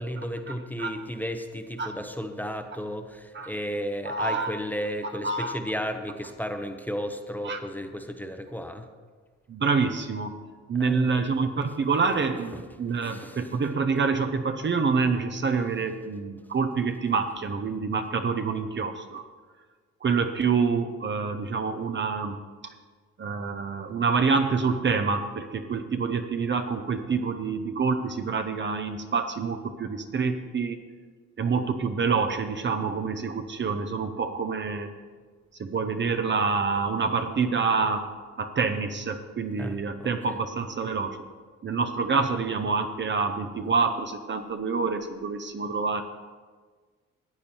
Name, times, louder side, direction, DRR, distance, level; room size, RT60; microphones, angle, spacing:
voice 1, 0.0-8.9 10.7-11.2 11.6-11.8 12.0-13.6 39.6-40.4, equal, 5° left, 6 dB, 1.0 m, -34 dB
voice 2, 4.1-4.5 5.2-5.5 7.5-7.6 9.5-10.3 10.7-19.2 20.0-22.4 22.6-22.7 23.2-30.8 31.4-34.9 35.6-38.1 38.4-41.2 41.6-46.0, right 5 dB, 40° right, 7 dB, 0.9 m, -27 dB
14.0 x 8.5 x 4.5 m, 1.5 s
cardioid pair, 90°, 30 cm